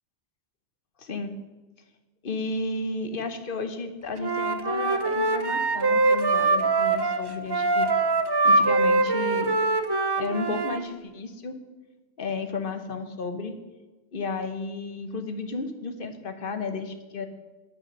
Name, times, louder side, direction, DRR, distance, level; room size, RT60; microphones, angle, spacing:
voice 1, 1.0-1.3 2.2-7.9 8.4-9.5 10.2-11.6 12.2-13.5 14.1-17.3, left 3 dB, 50° left, 8 dB, 1.1 m, -33 dB
Wind instrument woodwind instrument, 4.2-10.8, right 3 dB, 30° right, 0.4 m, -23 dB
8.6 x 8.5 x 6.3 m, 1.2 s
omnidirectional pair, 1.2 m